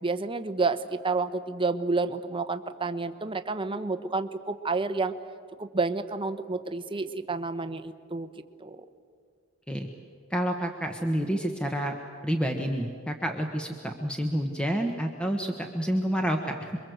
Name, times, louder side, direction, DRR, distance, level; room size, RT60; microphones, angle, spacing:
voice 1, 0.0-5.1 5.6-8.3 8.6-8.9, right 3 dB, 25° right, 9 dB, 1.0 m, -30 dB
voice 2, 10.3-12.0 12.2-16.8, equal, 5° left, 3 dB, 1.3 m, -29 dB
28.0 x 23.0 x 8.0 m, 2.2 s
head